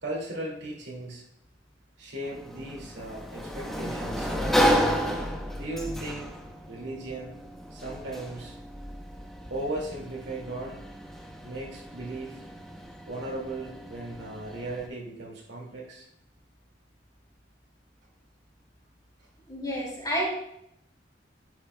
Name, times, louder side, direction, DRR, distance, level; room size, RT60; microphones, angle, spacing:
voice 1, 0.0-1.2 2.0-4.7 5.5-6.3 6.7-7.4 7.7-8.6 9.5-10.8 11.4-12.4 13.1-16.1, right 2 dB, 70° right, -2 dB, 2.2 m, -37 dB
Sliding door, 2.2-14.9, equal, ahead, 0.8 m, -32 dB
voice 2, 19.5-20.3, equal, 20° left, -4 dB, 3.0 m, -29 dB
10.5 x 7.3 x 2.2 m, 0.75 s
head